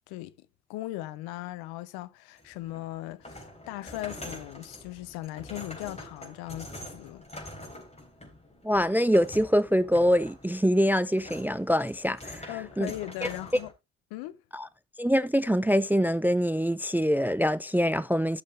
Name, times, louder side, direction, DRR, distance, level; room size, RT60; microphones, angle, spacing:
voice 1, 0.1-7.2 12.5-13.7 14.1-14.4, left 16 dB, 70° left, 0.7 m, -38 dB
sound 1, 2.4-13.7, left 1 dB, 15° left, 3.8 m, -45 dB
voice 2, 8.6-12.5 12.8-12.9 14.5-14.7 15.0-18.4, equal, 5° right, 0.4 m, -24 dB
12.0 x 6.5 x 3.2 m
hypercardioid pair, 45°, 40 cm